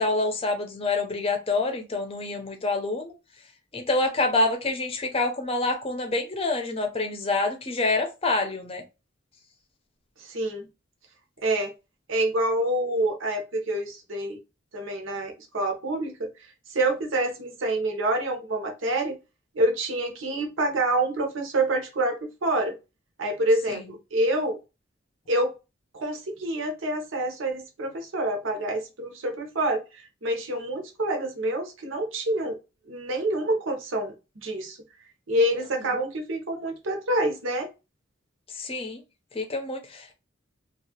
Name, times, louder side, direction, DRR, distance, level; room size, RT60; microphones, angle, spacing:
voice 1, 0.0-3.1 3.7-8.8 23.7-23.8 35.8-35.9 38.6-39.0 39.3-40.1, left 2 dB, 30° left, 0.6 m, -27 dB
voice 2, 10.2-10.7 11.4-11.7 12.1-14.4 14.7-16.3 16.7-19.2 19.5-22.8 23.2-24.6 25.3-25.5 25.9-32.6 32.9-34.1 34.4-34.8 35.3-37.7, right 1 dB, 80° right, 0.9 m, -27 dB
2.7 x 2.4 x 2.8 m
head